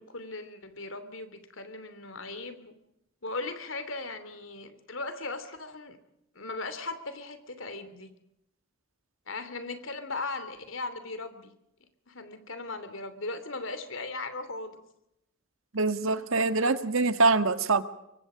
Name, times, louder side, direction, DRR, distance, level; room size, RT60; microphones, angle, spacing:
voice 1, 0.0-2.7 3.2-6.0 6.3-8.1 9.3-11.5 12.1-14.8, left 3 dB, 70° left, 11 dB, 3.0 m, -38 dB
voice 2, 15.7-17.8, right 3 dB, 85° right, 10 dB, 1.6 m, -24 dB
24.5 x 24.5 x 5.1 m, 0.84 s
head